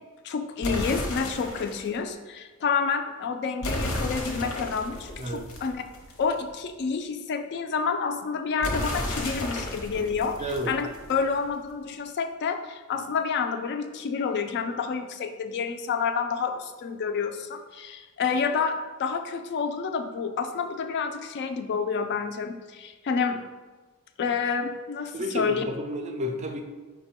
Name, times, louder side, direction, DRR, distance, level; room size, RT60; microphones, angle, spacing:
voice 1, 0.2-5.8 6.2-23.4 24.2-25.6, left 5 dB, 50° left, 7 dB, 0.3 m, -29 dB
sound 1, 0.6-1.9 3.6-6.3 8.6-11.3, left 1 dB, 85° left, 0.8 m, -33 dB
voice 2, 5.2-5.5 10.4-10.8 25.1-26.6, equal, 30° right, 5 dB, 0.4 m, -31 dB
5.2 x 2.2 x 4.2 m, 1.3 s
head